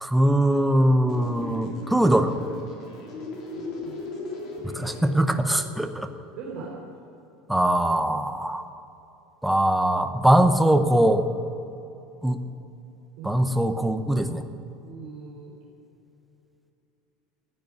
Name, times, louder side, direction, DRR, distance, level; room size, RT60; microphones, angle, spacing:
voice 1, 0.0-2.3 4.6-6.1 7.5-8.7 9.4-11.3 12.2-12.4 13.2-14.4, right 1 dB, ahead, 7 dB, 0.7 m, -21 dB
sound 1, 1.1-5.1, left 2 dB, 35° left, 3.5 m, -37 dB
voice 2, 3.5-4.1 5.6-5.8 6.4-6.7 13.2-13.3 14.8-15.5, right 5 dB, 50° right, -5 dB, 3.8 m, -40 dB
15.5 x 9.8 x 9.5 m, 2.8 s
cardioid pair, 175°, 0 cm